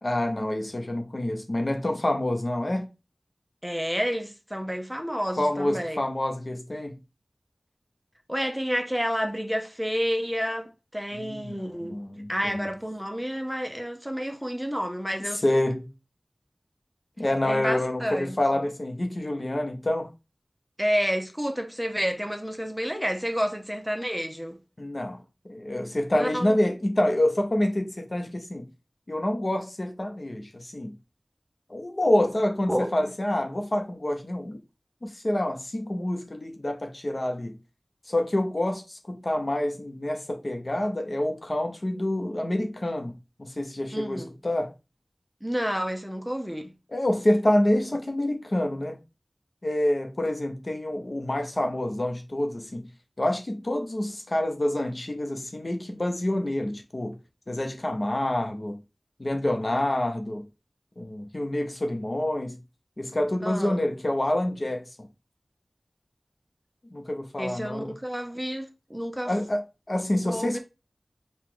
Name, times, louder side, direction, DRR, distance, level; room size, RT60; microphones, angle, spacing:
voice 1, 0.0-2.9 5.4-6.9 11.1-11.6 11.9-12.7 15.4-15.9 17.2-20.1 24.8-25.2 25.5-28.7 29.1-30.9 31.7-34.6 35.0-37.6 38.1-44.7 46.9-49.0 49.6-52.9 53.2-57.2 57.5-58.8 59.2-60.4 61.0-62.6 63.0-65.1 66.9-67.9 69.2-70.6, left 1 dB, 50° left, 0.8 m, -27 dB
voice 2, 3.6-6.0 8.3-12.0 12.3-15.4 17.5-18.4 20.8-24.6 26.1-26.5 32.7-33.1 43.9-44.3 45.4-46.7 63.4-63.8 67.4-69.3 70.2-70.6, equal, 5° right, 0.7 m, -30 dB
4.7 x 2.4 x 3.8 m
wide cardioid pair, 50°, 0 cm